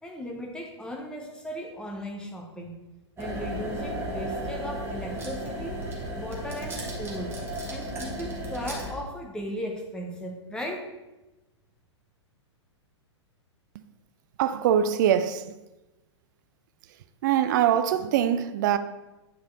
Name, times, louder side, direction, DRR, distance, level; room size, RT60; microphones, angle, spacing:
voice 1, 0.0-2.8 3.2-5.8 6.2-7.4 7.7-10.9, equal, 5° left, 1.1 m, -36 dB
sound 1, 3.2-8.9, right 1 dB, 15° right, 1.6 m, -34 dB
voice 2, 14.4-15.6 17.2-18.8, right 9 dB, 40° right, 0.5 m, -23 dB
9.0 x 4.8 x 4.1 m
figure-of-eight pair, 105°, 15 cm